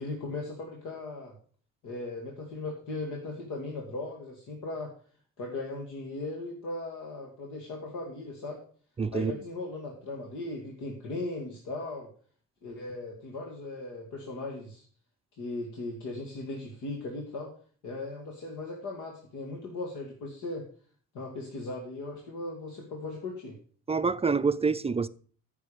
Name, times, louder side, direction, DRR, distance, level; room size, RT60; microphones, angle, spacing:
voice 1, 0.0-1.3 1.8-4.9 5.4-8.6 9.1-12.1 12.6-14.9 15.4-17.5 17.8-20.7 21.1-23.5, left 2 dB, 80° left, 2.5 m, -38 dB
voice 2, 9.0-9.3 23.9-25.1, right 5 dB, 20° right, 0.5 m, -26 dB
14.0 x 6.7 x 5.1 m
cardioid pair, 90°, 30 cm